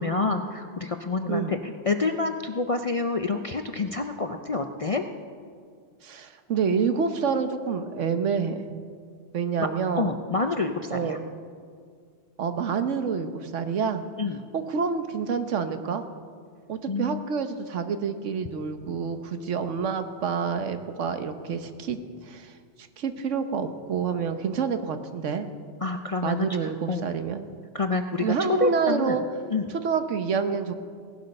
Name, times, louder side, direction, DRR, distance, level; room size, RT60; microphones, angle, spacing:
voice 1, 0.0-5.0 9.6-9.7 9.9-11.2 14.2-14.4 16.9-17.2 25.8-27.0 27.7-29.2 29.5-29.7, left 3 dB, 45° left, 6 dB, 0.4 m, -28 dB
voice 2, 6.0-8.7 9.3-10.2 10.9-11.2 12.4-14.0 14.5-16.0 16.7-22.0 22.3-22.5 23.0-25.5 26.2-27.4 28.2-29.2 29.8-30.7, right 6 dB, 80° right, 9 dB, 1.2 m, -28 dB
17.0 x 12.0 x 5.4 m, 2.1 s
omnidirectional pair, 1.2 m